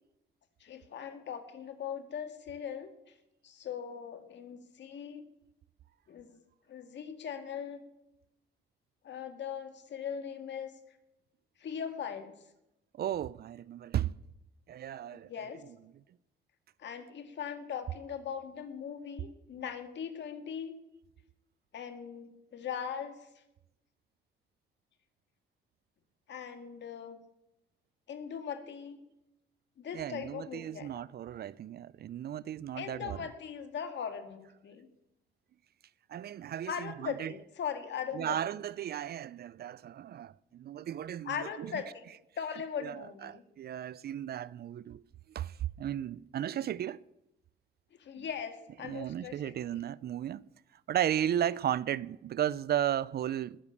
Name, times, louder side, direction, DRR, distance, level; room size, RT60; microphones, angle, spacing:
voice 1, 0.6-3.1 3.4-5.2 6.1-6.4 6.7-7.8 9.0-10.7 11.6-12.3 15.1-15.6 16.8-20.7 21.7-23.3 26.3-27.2 28.1-29.0 29.8-30.9 32.7-34.9 36.7-38.6 41.2-42.0 42.4-43.4 48.0-49.5, left 7 dB, 65° left, 2.0 m, -40 dB
voice 2, 13.0-14.2 14.7-15.5 29.9-33.3 36.1-37.3 38.1-41.7 42.8-45.0 45.3-47.0 48.2-48.3 48.8-50.4 50.9-53.6, right 10 dB, 55° right, 0.5 m, -35 dB
20.0 x 6.9 x 7.2 m
cardioid pair, 90°, 20 cm